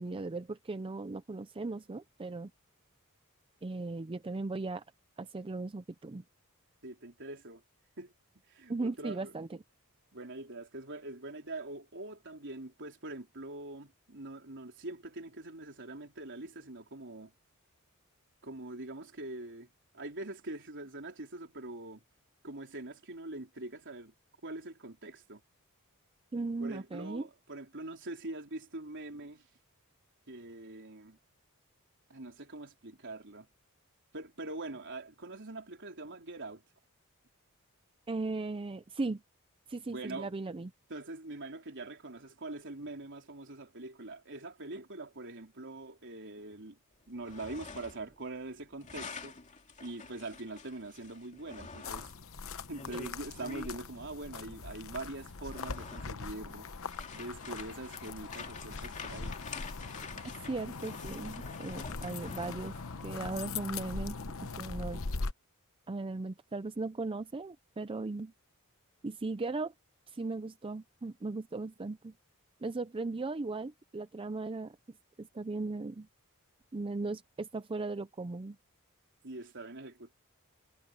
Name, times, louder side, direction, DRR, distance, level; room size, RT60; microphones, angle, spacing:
voice 1, 0.0-2.5 3.6-4.8 5.2-6.2 8.7-9.6 26.3-27.3 38.1-39.2 39.7-40.7 52.9-53.0 60.5-62.7 63.0-64.1 64.6-65.0 65.9-68.3 69.0-69.7 70.1-72.1 72.6-74.8 75.2-76.1 76.7-78.6, right 3 dB, 25° right, 0.5 m, -37 dB
voice 2, 6.8-7.6 8.0-8.1 8.5-9.4 10.1-17.3 18.4-19.7 19.9-22.0 22.4-24.1 24.4-25.4 26.6-29.5 30.3-31.2 32.1-33.5 34.1-36.6 39.9-40.3 40.9-46.8 47.1-49.4 49.8-52.1 52.7-56.7 57.1-59.4 79.2-80.1, right 2 dB, 55° right, 4.3 m, -43 dB
sound 1, 47.1-48.2 48.4-53.8 54.7-54.8 55.3-63.1, left 4 dB, 35° left, 2.4 m, -48 dB
sound 2, 51.8-65.3, left 4 dB, 65° left, 1.0 m, -41 dB
head